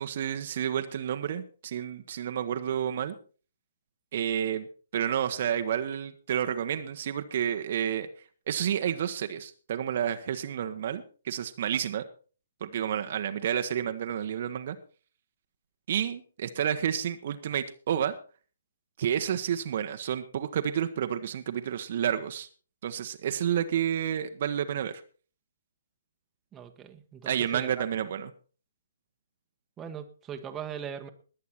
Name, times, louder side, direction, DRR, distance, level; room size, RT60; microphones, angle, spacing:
voice 1, 0.0-3.1 4.1-4.7 4.9-8.1 8.5-12.0 12.6-14.8 15.9-18.1 19.0-22.5 22.8-25.0 27.2-28.3, right 9 dB, 45° right, 8 dB, 1.2 m, -30 dB
voice 2, 26.5-27.8 29.8-31.1, right 8 dB, 15° right, 6 dB, 1.3 m, -40 dB
20.5 x 8.4 x 4.5 m, 0.39 s
figure-of-eight pair, 130°, 0 cm